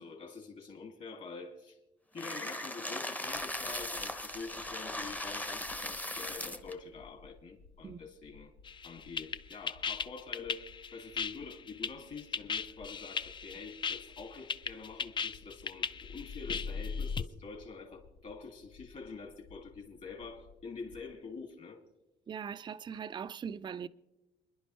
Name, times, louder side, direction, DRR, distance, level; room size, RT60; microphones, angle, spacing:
voice 1, 0.0-1.8 2.1-8.5 8.8-21.8, left 4 dB, 45° left, 2.5 m, -46 dB
sound 1, 2.2-6.7, left 1 dB, 10° left, 0.8 m, -38 dB
sound 2, 3.3-21.1, left 5 dB, 85° left, 1.2 m, -59 dB
sound 3, 8.7-17.2, left 6 dB, 30° left, 0.4 m, -36 dB
voice 2, 22.3-23.9, right 7 dB, 25° right, 0.4 m, -40 dB
28.5 x 10.5 x 3.2 m
cardioid pair, 110°, 17 cm